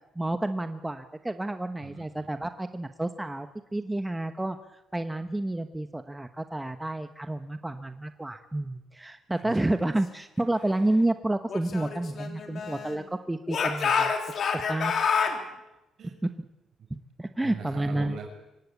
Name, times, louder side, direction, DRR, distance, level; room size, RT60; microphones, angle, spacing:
voice 1, 0.1-14.1 14.5-14.9 16.2-16.3 17.2-18.2, right 1 dB, 10° right, 8 dB, 1.1 m, -30 dB
voice 2, 1.8-2.3 9.4-9.5 15.0-15.6 16.0-16.2 17.4-18.3, right 6 dB, 65° right, 5 dB, 5.9 m, -42 dB
Speech / Shout, 11.5-13.0 13.5-15.4, left 6 dB, 60° left, 3.4 m, -28 dB
24.5 x 17.0 x 8.5 m, 0.93 s
cardioid pair, 90°, 0 cm